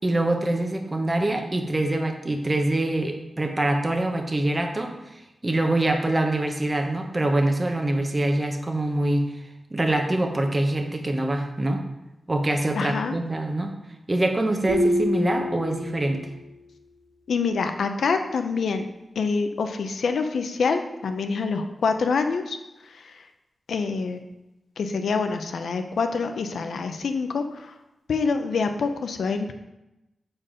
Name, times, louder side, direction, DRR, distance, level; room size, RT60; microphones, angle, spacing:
voice 1, 0.0-9.3 9.7-11.8 12.3-13.7 14.1-16.2, right 1 dB, 25° right, 4 dB, 1.0 m, -24 dB
voice 2, 12.8-13.1 17.3-18.8 19.2-22.6 22.9-23.2 23.7-24.2 24.8-27.7 28.1-29.5, left 4 dB, 85° left, 7 dB, 0.6 m, -26 dB
sound 1, 14.7-16.4, left 1 dB, 75° right, 1.0 m, -26 dB
7.2 x 4.4 x 5.0 m, 0.97 s
wide cardioid pair, 90°, 0 cm